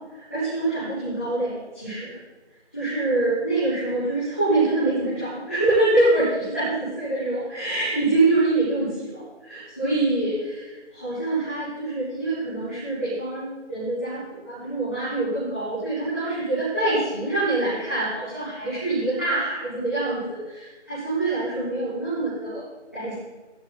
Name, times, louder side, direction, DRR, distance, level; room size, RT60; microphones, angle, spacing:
voice 1, 0.1-2.2 2.7-22.6 22.9-23.1, right 2 dB, 10° left, -18 dB, 5.5 m, -25 dB
25.0 x 13.0 x 2.3 m, 1.2 s
figure-of-eight pair, 180°, 35 cm